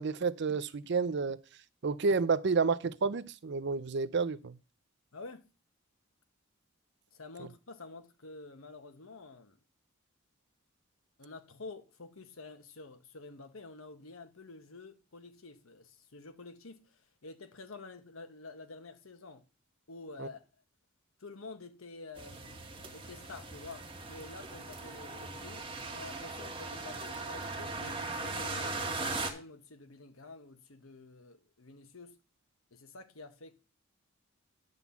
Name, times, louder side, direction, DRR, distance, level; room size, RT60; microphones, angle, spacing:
voice 1, 0.0-1.4 1.8-4.6 7.4-7.5 20.2-20.3, right 4 dB, 55° right, 0.5 m, -30 dB
voice 2, 5.1-5.5 7.1-9.6 11.2-19.5 19.9-20.5 21.2-22.5 22.9-32.2 32.7-33.5, left 3 dB, 85° left, 1.2 m, -49 dB
sound 1, 22.2-29.3, right 3 dB, 25° right, 1.6 m, -39 dB
10.5 x 4.0 x 7.1 m
head